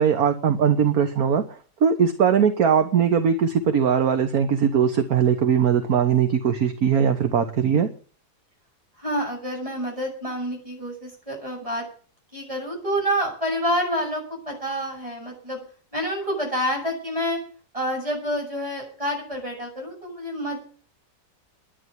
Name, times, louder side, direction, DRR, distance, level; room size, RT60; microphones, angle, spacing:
voice 1, 0.0-7.9, right 7 dB, 60° right, 8 dB, 1.6 m, -20 dB
voice 2, 9.0-11.8 12.3-15.6 15.9-17.4 17.7-20.7, equal, 20° right, 0 dB, 7.9 m, -28 dB
11.5 x 10.5 x 9.4 m, 0.43 s
omnidirectional pair, 1.9 m